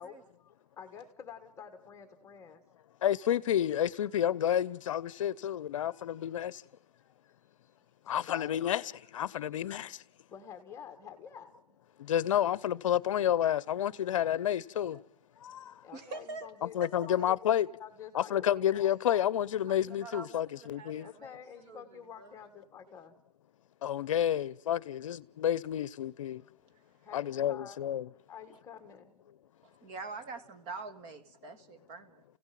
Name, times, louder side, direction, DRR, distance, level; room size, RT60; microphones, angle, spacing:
voice 1, 0.0-2.6 5.8-6.0 7.0-7.1 7.8-8.6 10.3-11.8 15.8-16.7 17.1-18.7 21.0-23.2 27.0-27.8 28.3-29.1, left 8 dB, 15° left, 1.5 m, -49 dB
voice 2, 3.0-6.6 8.1-10.0 12.0-15.0 15.4-15.7 16.7-17.7 18.1-21.1 23.8-26.4 27.1-28.1, left 10 dB, 50° left, 0.8 m, -30 dB
voice 3, 15.9-16.5 16.8-16.9 17.2-17.3 19.7-21.4 21.7-22.3 29.6-32.2, right 3 dB, 30° right, 1.8 m, -45 dB
30.0 x 16.5 x 7.6 m
hypercardioid pair, 150°, 20 cm